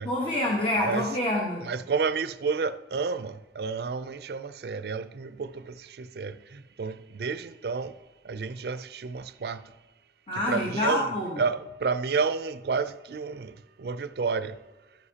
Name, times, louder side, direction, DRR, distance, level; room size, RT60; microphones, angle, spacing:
voice 1, 0.0-1.6 10.3-11.4, left 1 dB, 25° left, 1.1 m, -27 dB
voice 2, 1.6-8.0 8.2-9.7 10.5-11.1 11.4-14.6, right 5 dB, 60° right, 0.4 m, -31 dB
12.0 x 9.7 x 2.8 m
head